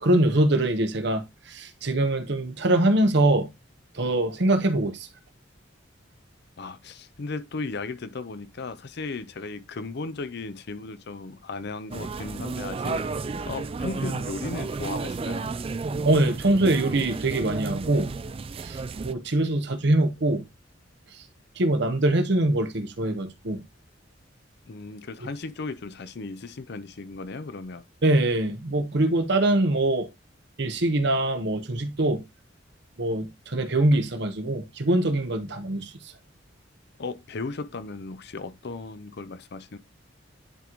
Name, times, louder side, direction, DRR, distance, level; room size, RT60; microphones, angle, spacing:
voice 1, 0.0-3.5 3.9-5.1 16.0-18.1 18.6-20.4 21.6-23.6 28.0-30.1 30.6-32.2 33.0-35.9, right 1 dB, 60° right, 0.9 m, -23 dB
voice 2, 6.6-13.2 13.5-15.5 24.7-27.8 37.0-39.8, left 3 dB, 60° left, 0.5 m, -36 dB
sound 1, 11.9-19.1, right 3 dB, 30° right, 0.3 m, -32 dB
10.5 x 3.8 x 3.0 m
head